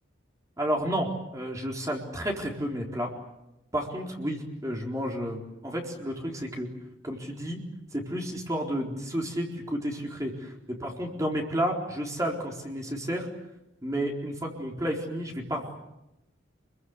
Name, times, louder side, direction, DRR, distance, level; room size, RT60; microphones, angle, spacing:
voice 1, 0.6-3.1 3.7-6.7 7.0-7.6 7.9-10.5 10.8-13.3 13.8-15.8, equal, 15° right, 0 dB, 4.2 m, -31 dB
29.0 x 23.0 x 8.1 m, 0.89 s
head